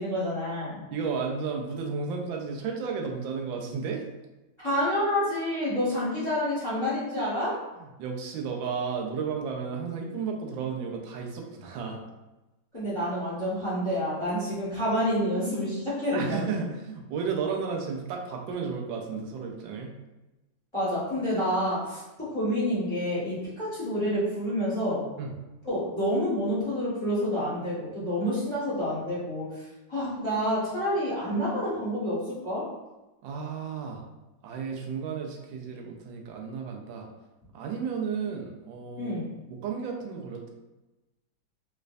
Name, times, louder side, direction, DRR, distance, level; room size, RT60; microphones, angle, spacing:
voice 1, 0.0-0.8 4.6-7.5 12.7-16.6 20.7-25.0 25.6-29.6 29.9-32.6 39.0-39.3, equal, 15° left, -9 dB, 1.2 m, -28 dB
voice 2, 0.9-4.0 7.7-12.0 16.1-19.9 25.2-25.4 33.2-34.0 34.4-37.1 37.5-39.1 39.5-40.5, right 5 dB, 85° right, 1 dB, 1.3 m, -33 dB
3.1 x 3.1 x 2.5 m, 1.1 s
omnidirectional pair, 2.0 m